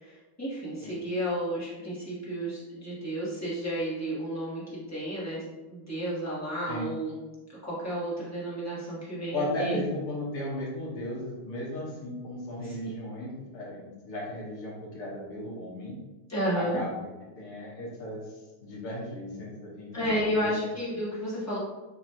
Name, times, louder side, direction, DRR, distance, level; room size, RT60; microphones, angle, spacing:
voice 1, 0.0-4.6 4.9-5.4 5.7-7.1 7.6-9.8 12.6-12.8 16.3-16.8 19.9-21.6, equal, 10° left, -8 dB, 1.0 m, -32 dB
voice 2, 9.3-15.9 16.5-17.1 17.4-18.3 18.6-20.6, left 1 dB, 85° left, -5 dB, 2.2 m, -35 dB
6.9 x 2.6 x 2.9 m, 1.1 s
omnidirectional pair, 2.4 m